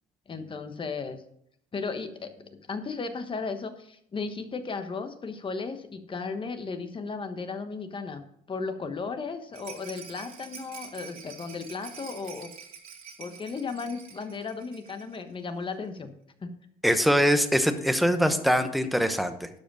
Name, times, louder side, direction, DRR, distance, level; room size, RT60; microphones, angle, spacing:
voice 1, 0.3-1.2 1.7-12.5 13.2-16.1 16.4-16.5, left 4 dB, 30° left, 8 dB, 1.2 m, -35 dB
Rattle, 9.5-15.2 15.5-15.6 15.8-15.9, right 7 dB, 60° right, 2.3 m, -46 dB
voice 2, 16.8-19.5, equal, ahead, 8 dB, 1.0 m, -23 dB
12.0 x 5.1 x 6.3 m, 0.72 s
cardioid pair, 110°, 17 cm